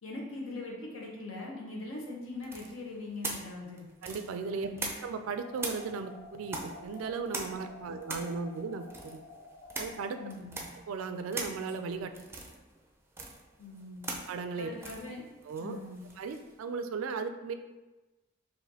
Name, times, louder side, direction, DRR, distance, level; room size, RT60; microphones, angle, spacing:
voice 1, 0.0-3.9 4.5-4.9 7.8-7.9 10.2-10.7 13.6-14.1 14.6-15.2 15.6-16.0, left 2 dB, 80° left, -2 dB, 0.9 m, -41 dB
sound 1, 2.4-5.2 5.6-16.5, right 2 dB, 10° right, 0.4 m, -42 dB
voice 2, 4.0-4.7 5.0-9.2 9.8-10.2 10.9-12.1 14.3-14.7 15.5-15.8 16.2-17.5, right 5 dB, 85° right, 8 dB, 0.3 m, -36 dB
sound 2, 5.3-10.3, left 3 dB, 35° left, 0.7 m, -51 dB
4.8 x 2.6 x 2.8 m, 1.1 s
head